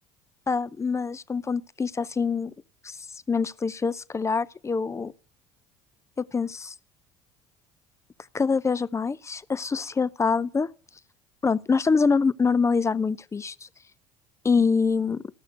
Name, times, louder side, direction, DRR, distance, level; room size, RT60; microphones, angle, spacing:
voice 1, 0.5-2.5 2.8-3.0 3.3-5.1 6.2-6.7 8.3-10.7 11.4-13.5 14.4-15.2, left 5 dB, 20° left, 0.4 m, -25 dB
13.5 x 6.4 x 6.5 m
hypercardioid pair, 75°, 16 cm